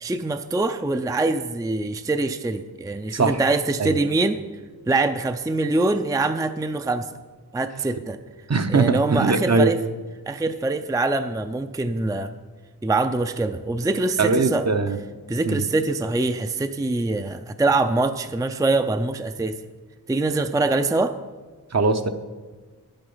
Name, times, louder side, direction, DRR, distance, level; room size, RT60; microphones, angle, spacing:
voice 1, 0.0-4.4 4.9-7.1 7.5-8.2 8.7-9.8 10.3-12.3 12.8-14.6 15.3-19.6 20.1-21.1, right 2 dB, 10° right, 9 dB, 0.4 m, -24 dB
voice 2, 8.5-9.7 14.2-15.0 15.5-15.6 21.7-22.1, right 3 dB, 45° right, 8 dB, 0.8 m, -21 dB
10.0 x 8.9 x 5.5 m, 1.4 s
wide cardioid pair, 65°, 36 cm